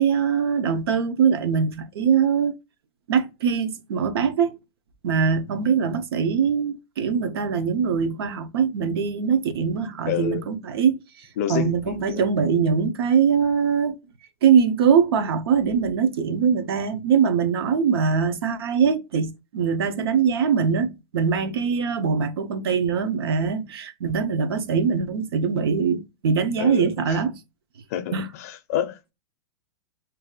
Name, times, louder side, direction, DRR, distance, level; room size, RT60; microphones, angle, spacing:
voice 1, 0.0-2.6 3.1-4.6 5.0-11.0 11.5-14.0 14.4-27.4 28.1-28.3, right 6 dB, 75° right, 0.6 m, -22 dB
voice 2, 10.1-10.4 11.4-12.6 26.6-27.2 27.9-29.0, left 10 dB, 40° left, 0.4 m, -29 dB
2.7 x 2.3 x 3.6 m
supercardioid pair, 175°, 13 cm